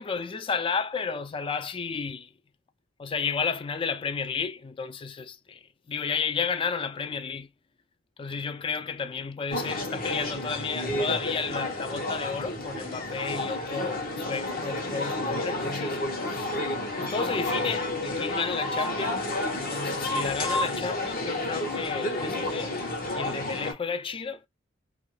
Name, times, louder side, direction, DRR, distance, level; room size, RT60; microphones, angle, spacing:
voice 1, 0.0-2.3 3.0-7.5 8.2-16.0 16.3-16.5 17.0-19.2 19.5-22.7 23.1-24.4, left 5 dB, 25° left, 0.3 m, -32 dB
sound 1, 9.5-23.7, left 1 dB, 45° left, 0.9 m, -30 dB
2.7 x 2.5 x 3.0 m
head